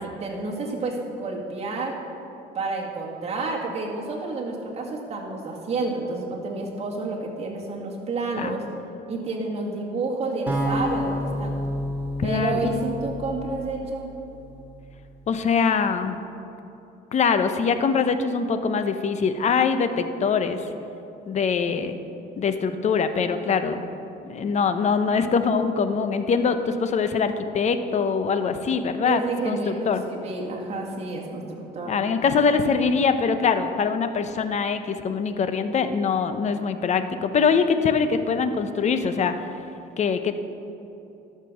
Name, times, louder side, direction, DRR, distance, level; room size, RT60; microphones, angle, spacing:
voice 1, 0.0-2.0 2.5-8.6 9.1-11.6 12.2-14.1 29.0-32.0, right 3 dB, 40° right, -2 dB, 2.1 m, -30 dB
sound 1, 10.5-14.6, left 1 dB, 10° right, 2.5 m, -30 dB
voice 2, 12.2-12.7 15.3-16.2 17.1-20.7 21.3-22.0 22.4-23.9 24.2-30.0 31.9-39.3 40.0-40.3, left 5 dB, 45° left, 9 dB, 0.8 m, -23 dB
12.5 x 6.8 x 6.3 m, 2.9 s
cardioid pair, 110°, 17 cm